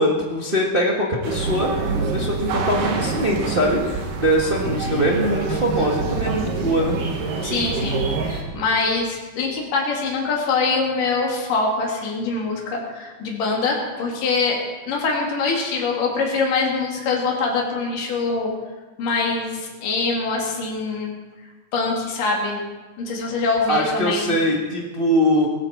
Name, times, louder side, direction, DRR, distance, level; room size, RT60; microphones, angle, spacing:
voice 1, 0.0-7.0 23.7-25.5, equal, 45° right, -2 dB, 0.7 m, -22 dB
sound 1, 1.2-8.4, right 4 dB, 80° right, 3.2 m, -26 dB
voice 2, 7.4-14.6 14.9-18.5 19.0-21.1 21.7-22.6 23.0-24.3, left 4 dB, 75° left, -1 dB, 3.9 m, -24 dB
18.0 x 14.5 x 4.3 m, 1.3 s
omnidirectional pair, 3.8 m